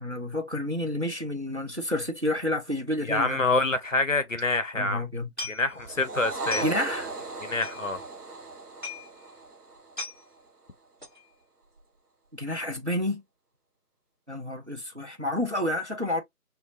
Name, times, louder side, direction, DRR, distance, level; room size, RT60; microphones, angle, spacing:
voice 1, 0.0-3.4 4.7-5.3 6.6-7.1 12.3-13.2 14.3-16.2, left 1 dB, 50° right, 0.5 m, -29 dB
voice 2, 3.1-5.0 5.5-6.6 7.4-8.0, left 2 dB, 55° left, 0.5 m, -26 dB
sound 1, 5.4-6.0 6.3-7.0 7.3-7.4 7.6-8.2 8.5-8.6 8.8-9.1 9.4-9.5 9.7-10.2 11.0-11.2 11.6-12.0 12.2-12.3, left 3 dB, 30° right, 1.3 m, -38 dB
sound 2, 5.8-10.4, right 3 dB, 75° right, 0.8 m, -37 dB
3.1 x 2.2 x 2.5 m
figure-of-eight pair, 170°, 46 cm